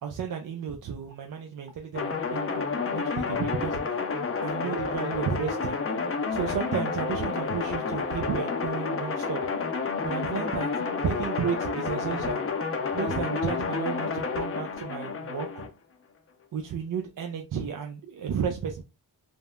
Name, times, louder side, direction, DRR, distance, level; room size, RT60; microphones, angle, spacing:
voice 1, 0.0-3.9 4.4-5.8 6.3-9.4 10.0-12.4 12.9-15.7 16.5-18.8, right 7 dB, 50° right, 0.5 m, -33 dB
sound 1, 1.9-15.7, left 4 dB, 30° left, 0.6 m, -30 dB
3.4 x 2.0 x 2.2 m
cardioid pair, 55°, 43 cm